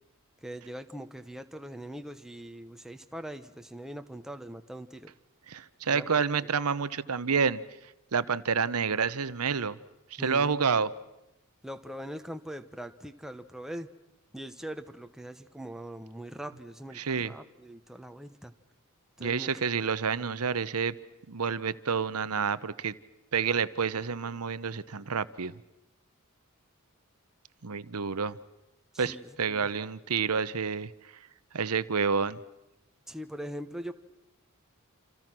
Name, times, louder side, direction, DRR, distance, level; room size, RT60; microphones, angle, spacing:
voice 1, 0.4-5.1 5.9-6.2 10.2-10.6 11.6-13.9 14.3-18.5 19.2-19.5 20.2-20.3 28.9-29.7 33.1-33.9, right 1 dB, ahead, 8 dB, 1.1 m, -42 dB
voice 2, 5.5-7.6 8.1-9.8 10.1-10.9 17.0-17.3 19.2-20.9 21.3-23.0 23.3-25.5 27.6-28.4 29.0-30.9 31.5-32.4, right 6 dB, 90° right, 15 dB, 0.9 m, -29 dB
28.0 x 27.5 x 6.1 m, 0.92 s
head